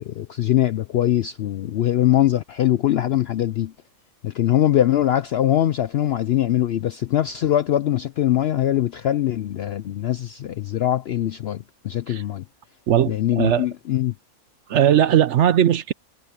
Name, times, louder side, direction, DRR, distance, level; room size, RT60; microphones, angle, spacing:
voice 1, 0.0-3.7 4.2-12.4 13.1-14.1, left 12 dB, 70° left, 0.6 m, -22 dB
voice 2, 12.9-13.7 14.7-15.9, right 10 dB, 60° right, 0.8 m, -18 dB
omnidirectional pair, 1.5 m